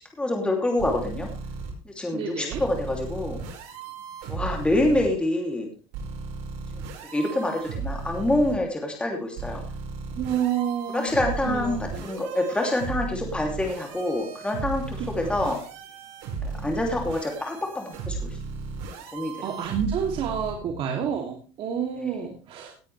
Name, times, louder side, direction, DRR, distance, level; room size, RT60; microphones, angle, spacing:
voice 1, 0.2-1.3 1.8-3.4 4.3-5.7 7.1-9.6 10.9-15.6 16.4-18.3 19.1-19.3 22.0-22.2, left 1 dB, 10° left, 1 dB, 2.8 m, -26 dB
sound 1, 0.8-1.7 2.5-5.1 5.9-8.6 9.4-20.5, right 4 dB, 75° right, 4.9 m, -35 dB
voice 2, 2.1-2.6 10.1-12.0 15.0-15.1 15.4-15.5 19.4-22.7, right 8 dB, 50° right, 1 dB, 2.7 m, -29 dB
18.0 x 9.2 x 3.3 m, 0.35 s
cardioid pair, 125°, 12 cm